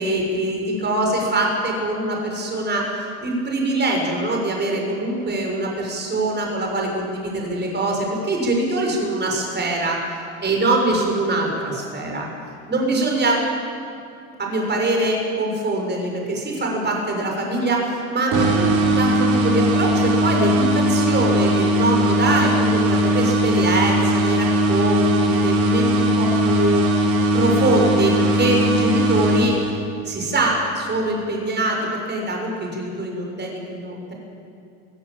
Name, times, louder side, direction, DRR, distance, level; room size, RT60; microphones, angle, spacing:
voice 1, 0.0-2.9 3.2-10.0 10.4-12.3 12.7-13.4 14.4-26.9 27.3-29.6 30.0-34.1, right 2 dB, 25° right, 0 dB, 6.4 m, -23 dB
sound 1, 18.3-30.0, right 1 dB, 60° right, 4.8 m, -19 dB
22.5 x 17.0 x 8.8 m, 2.7 s
supercardioid pair, 115°, 41 cm